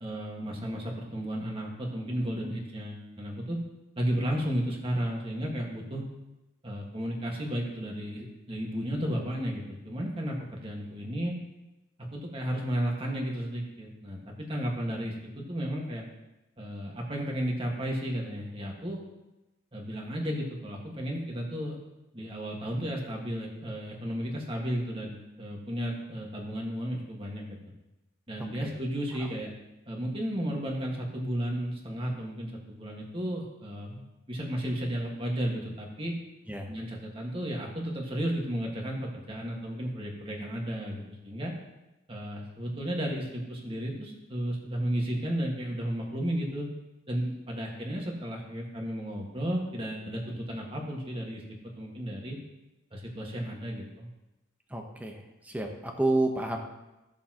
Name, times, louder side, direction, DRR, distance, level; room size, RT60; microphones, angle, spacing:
voice 1, 0.0-3.6 4.0-6.1 6.6-11.3 12.0-16.0 16.6-19.0 19.7-21.8 22.1-27.6 28.3-29.5 29.9-34.0 34.3-36.2 36.7-41.5 42.1-46.7 47.1-51.4 51.8-52.4 52.9-54.1, equal, 25° right, -1 dB, 1.7 m, -33 dB
voice 2, 28.4-28.7 36.5-36.7 54.7-56.6, right 2 dB, 10° right, 2 dB, 1.0 m, -30 dB
15.0 x 7.0 x 3.0 m, 0.99 s
head